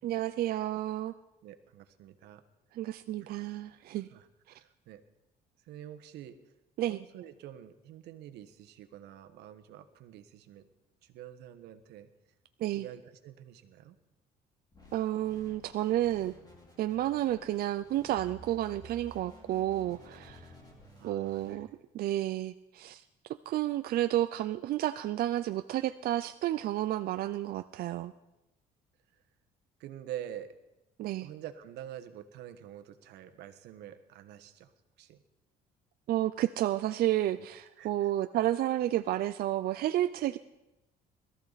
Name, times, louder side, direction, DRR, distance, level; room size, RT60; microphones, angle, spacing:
voice 1, 0.0-1.1 2.7-4.1 6.8-7.0 12.6-12.9 14.9-16.3 16.8-20.4 21.0-21.7 21.9-23.0 23.5-28.1 31.0-31.3 36.1-40.4, right 13 dB, 65° right, 10 dB, 0.5 m, -31 dB
voice 2, 1.4-2.4 4.1-5.0 5.7-6.4 6.9-10.7 11.0-12.1 12.7-13.9 21.0-21.6 29.8-30.6 31.2-34.7 35.0-35.2 37.8-38.1, right 11 dB, 80° right, 9 dB, 1.4 m, -47 dB
sound 1, 14.7-21.6, equal, 25° left, 4.5 m, -53 dB
21.0 x 14.0 x 4.1 m, 0.94 s
cardioid pair, 110°, 17 cm